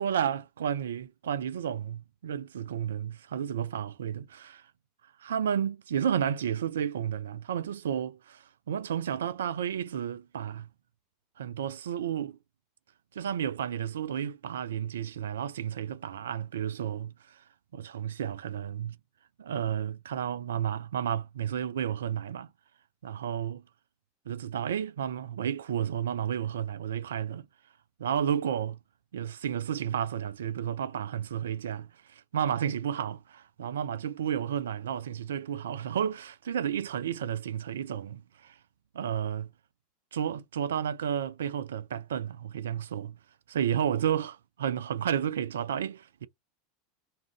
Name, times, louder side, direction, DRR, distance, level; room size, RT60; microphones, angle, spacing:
voice 1, 0.0-4.6 5.2-10.7 11.4-12.4 13.2-17.4 17.7-19.0 19.4-22.5 23.0-23.6 24.3-27.5 28.0-28.8 29.1-38.6 38.9-39.5 40.1-43.2 43.5-46.3, right 9 dB, 75° right, 0.3 m, -32 dB
2.4 x 2.1 x 3.4 m
figure-of-eight pair, 85°, 0 cm